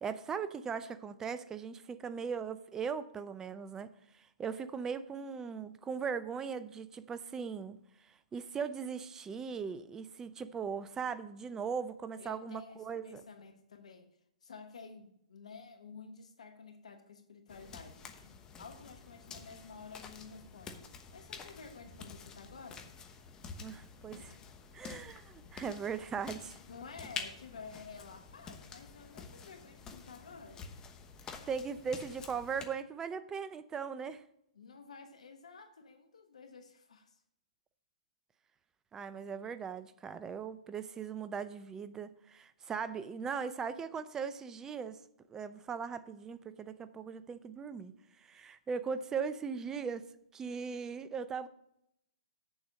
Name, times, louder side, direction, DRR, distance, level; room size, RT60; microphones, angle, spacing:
voice 1, 0.0-7.8 8.0-13.2 23.6-24.4 24.7-26.6 31.5-34.2 38.9-45.0 45.3-50.1 50.3-51.5, right 6 dB, 15° right, 0.5 m, -39 dB
voice 2, 12.2-14.1 14.4-20.7 21.1-22.8 26.7-30.6 34.5-37.2, left 5 dB, 70° left, 1.2 m, -51 dB
sound 1, 17.5-32.7, left 5 dB, 20° left, 1.1 m, -49 dB
7.9 x 7.0 x 5.2 m
hypercardioid pair, 125°, 4 cm